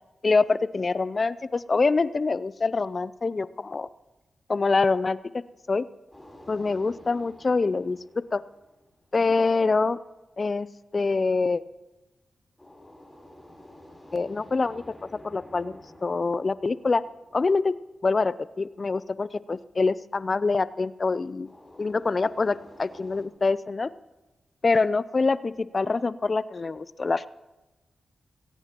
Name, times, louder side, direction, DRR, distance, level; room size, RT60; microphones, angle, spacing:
voice 1, 0.2-3.9 4.5-5.2 5.7-5.9 6.5-8.4 9.1-10.0 10.4-10.7 10.9-11.6 14.1-14.8 15.2-17.0 17.3-17.7 18.0-21.5 21.8-23.9 24.6-27.3, left 3 dB, 50° left, 17 dB, 0.5 m, -25 dB
sound 1, 6.1-9.2 12.6-18.0 21.4-23.3, left 1 dB, 15° left, 3.7 m, -50 dB
20.5 x 18.0 x 3.0 m, 1.1 s
cardioid pair, 45°, 0 cm